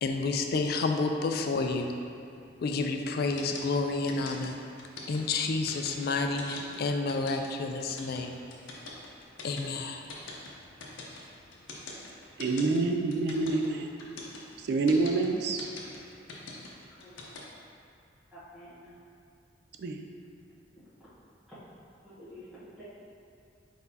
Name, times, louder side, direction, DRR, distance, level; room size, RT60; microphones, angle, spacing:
voice 1, 0.0-1.9 2.6-4.6 5.1-8.3 9.4-10.0, left 3 dB, 55° left, 0.3 m, -30 dB
sound 1, 3.4-17.4, left 4 dB, 85° left, 0.6 m, -43 dB
voice 2, 12.4-13.9 14.6-15.7 19.8-20.0, right 3 dB, 60° right, 0.3 m, -27 dB
voice 3, 18.3-19.0 20.8-20.9 22.0-22.5 22.8-22.9, left 1 dB, ahead, 1.1 m, -50 dB
4.6 x 4.0 x 2.7 m
head